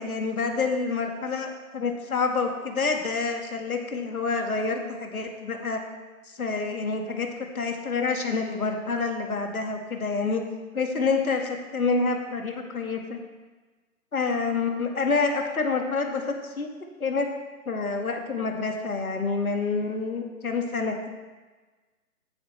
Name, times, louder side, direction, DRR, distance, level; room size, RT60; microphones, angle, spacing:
voice 1, 0.0-5.8 6.3-7.3 7.5-10.4 10.7-13.2 14.1-16.7 17.0-17.3 17.7-21.1, left 4 dB, 70° left, 3 dB, 1.9 m, -27 dB
14.5 x 8.2 x 3.3 m, 1.3 s
hypercardioid pair, 175°, 45 cm